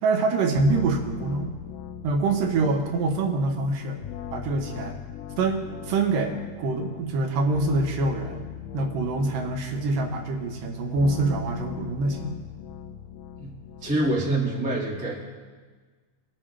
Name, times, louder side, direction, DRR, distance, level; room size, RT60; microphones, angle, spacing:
voice 1, 0.0-1.5 2.0-4.0 4.3-5.0 5.4-8.4 8.7-12.3, right 3 dB, 75° right, 4 dB, 2.5 m, -25 dB
sound 1, 0.5-14.4, left 9 dB, 80° left, 2.0 m, -40 dB
voice 2, 13.8-15.2, right 2 dB, 5° right, -5 dB, 0.7 m, -25 dB
20.5 x 7.4 x 3.3 m, 1.4 s
omnidirectional pair, 4.0 m